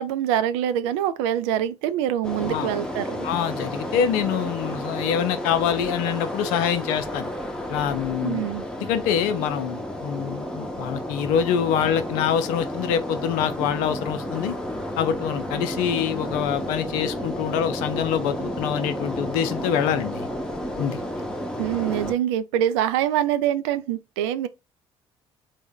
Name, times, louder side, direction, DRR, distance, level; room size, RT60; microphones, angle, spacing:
voice 1, 0.0-3.3 8.2-8.7 21.6-24.5, right 11 dB, 70° right, 0.4 m, -25 dB
sound 1, 2.2-22.1, equal, 5° left, 0.8 m, -31 dB
voice 2, 3.2-7.3 7.7-8.4 8.8-14.6 15.0-20.3 20.8-21.0, left 8 dB, 65° left, 0.5 m, -25 dB
3.4 x 2.1 x 3.6 m
figure-of-eight pair, 50°, 15 cm